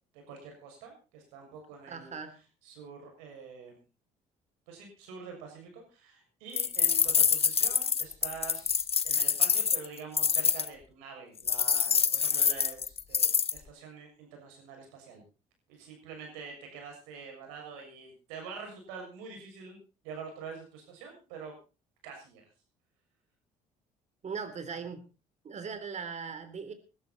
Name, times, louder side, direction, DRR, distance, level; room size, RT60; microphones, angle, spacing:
voice 1, 0.1-2.1 2.6-3.8 4.7-15.2 15.7-19.8 20.0-21.5 22.0-22.4, right 5 dB, 90° right, 3 dB, 6.7 m, -46 dB
voice 2, 1.9-2.3 24.2-25.0 25.4-26.7, right 5 dB, 45° right, 11 dB, 3.6 m, -39 dB
sound 1, 6.6-10.7 11.5-13.6, left 6 dB, 35° left, 1.1 m, -26 dB
20.0 x 12.5 x 4.3 m, 0.33 s
supercardioid pair, 65°, 16 cm